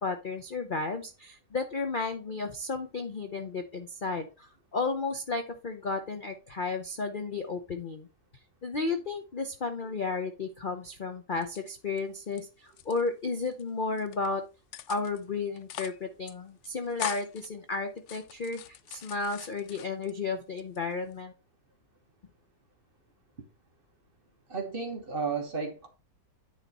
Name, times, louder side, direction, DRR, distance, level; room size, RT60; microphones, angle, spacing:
voice 1, 0.0-8.1 8.6-14.4 14.9-18.6 18.9-21.3, left 4 dB, 45° left, 0.6 m, -33 dB
sound 1, 11.4-12.4 12.7-13.6 14.0-14.3 14.7-15.2 15.6-16.0 16.3-16.4 16.6-17.5 18.0-20.2 20.6-21.2, left 10 dB, 85° left, 0.6 m, -42 dB
voice 2, 24.5-25.9, right 5 dB, 35° right, 1.4 m, -33 dB
9.6 x 4.2 x 4.2 m
omnidirectional pair, 1.9 m